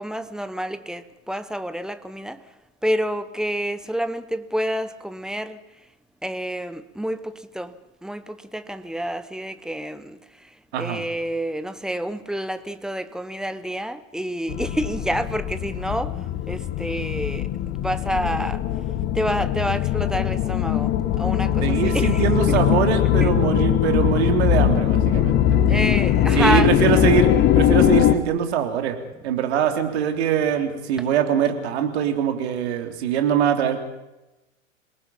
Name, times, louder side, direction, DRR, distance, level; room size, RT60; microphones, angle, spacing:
voice 1, 0.0-2.4 2.8-5.6 6.2-7.7 8.0-10.2 10.8-16.1 16.5-18.6 19.1-22.6 23.2-23.3 25.7-26.7, equal, ahead, 0.8 m, -28 dB
sound 1, 14.5-28.1, left 11 dB, 25° left, 1.1 m, -21 dB
voice 2, 21.6-25.6 26.4-29.0 29.2-33.8, right 8 dB, 50° right, 3.4 m, -23 dB
28.0 x 19.0 x 5.7 m
figure-of-eight pair, 105°, 40 cm